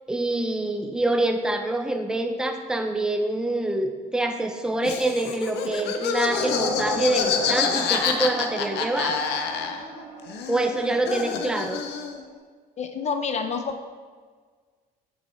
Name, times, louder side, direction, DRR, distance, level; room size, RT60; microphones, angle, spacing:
voice 1, 0.1-9.2 10.5-11.8, right 2 dB, 5° right, 5 dB, 0.6 m, -26 dB
Laughter, 4.8-10.0 10.3-12.2, left 6 dB, 80° left, 0.7 m, -27 dB
sound 1, 6.3-12.3, right 2 dB, 75° right, 1.9 m, -37 dB
voice 2, 12.8-13.8, left 5 dB, 40° left, 7 dB, 0.6 m, -29 dB
6.7 x 5.6 x 4.3 m, 1.5 s
cardioid pair, 110°, 17 cm